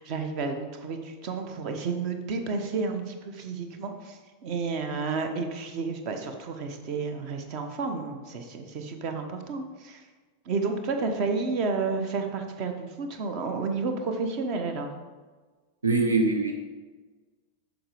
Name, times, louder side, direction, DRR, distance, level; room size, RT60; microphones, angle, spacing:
voice 1, 0.0-10.1 10.4-15.0, right 4 dB, 40° right, 6 dB, 1.1 m, -31 dB
voice 2, 15.8-16.5, right 3 dB, 75° right, 3 dB, 0.7 m, -23 dB
7.7 x 6.4 x 5.0 m, 1.4 s
figure-of-eight pair, 90°, 0 cm